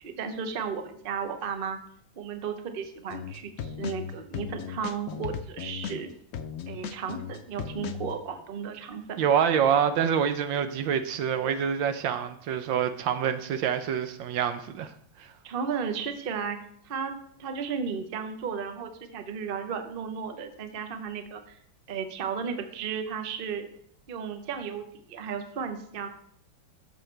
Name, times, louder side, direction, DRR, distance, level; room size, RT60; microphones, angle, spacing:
voice 1, 0.0-1.8 2.2-6.1 6.7-9.2 15.4-16.6 16.8-17.1 17.4-21.6 21.9-23.7 24.1-26.1, right 6 dB, 45° right, 7 dB, 0.7 m, -34 dB
sound 1, 3.1-8.2, left 7 dB, 65° left, 0.9 m, -36 dB
voice 2, 9.2-15.3, right 8 dB, 80° right, 9 dB, 1.4 m, -26 dB
13.0 x 7.0 x 3.3 m, 0.66 s
omnidirectional pair, 2.1 m